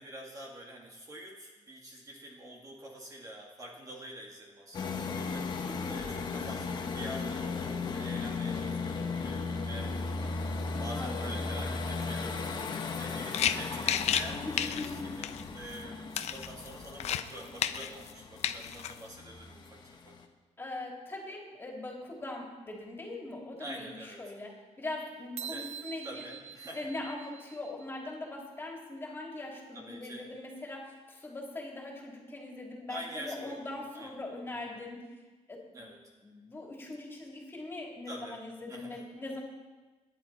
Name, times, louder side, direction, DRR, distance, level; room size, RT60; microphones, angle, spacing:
voice 1, 0.0-19.8 20.0-20.2 23.6-24.2 25.5-25.7 26.0-26.9 29.7-30.3 32.9-34.1 34.6-34.8 35.7-36.0 38.1-38.4 38.7-39.0, right 1 dB, 25° right, -1 dB, 2.0 m, -46 dB
sound 1, 4.7-20.2, left 4 dB, 35° left, 1.4 m, -36 dB
voice 2, 5.6-6.0 10.9-11.3 14.4-15.1 20.6-24.5 24.8-26.2 26.7-35.0 35.5-35.6 36.2-39.4, left 2 dB, 20° left, -1 dB, 3.3 m, -41 dB
sound 2, 13.0-13.1 13.3-14.3 14.5-15.0 15.2-15.4 15.7-15.8 16.2-17.3 17.6-18.1 18.4-18.9, left 9 dB, 60° left, 0.7 m, -31 dB
sound 3, 25.4-28.0, right 9 dB, 65° right, 0.7 m, -45 dB
28.0 x 11.0 x 4.3 m, 1.3 s
cardioid pair, 160°, 12 cm